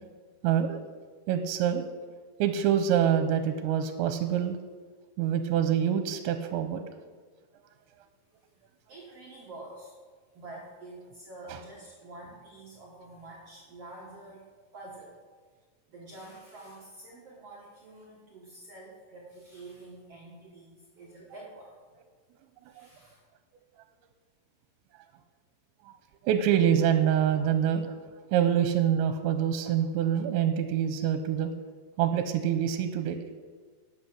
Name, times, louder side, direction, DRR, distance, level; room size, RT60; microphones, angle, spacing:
voice 1, 0.4-0.8 1.3-1.9 2.4-4.6 5.2-6.8 11.5-11.6 22.8-22.9 25.8-25.9 26.2-27.9 28.3-31.5 32.0-33.2, right 9 dB, 85° right, 8 dB, 2.9 m, -26 dB
voice 2, 8.9-9.9 10.3-14.5 14.7-15.2 15.9-21.7 22.6-23.2, right 2 dB, 70° right, -3 dB, 1.4 m, -47 dB
12.0 x 8.7 x 6.1 m, 1.5 s
omnidirectional pair, 5.3 m